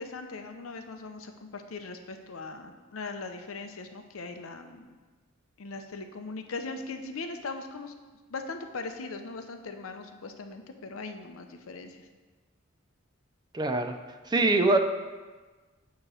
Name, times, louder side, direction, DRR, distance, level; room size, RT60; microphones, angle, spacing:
voice 1, 0.0-5.0 5.6-7.9 8.3-12.0, left 3 dB, 90° left, 6 dB, 0.7 m, -39 dB
voice 2, 13.5-13.9 14.3-14.8, right 2 dB, 20° right, 7 dB, 0.4 m, -23 dB
8.9 x 3.1 x 6.1 m, 1.3 s
head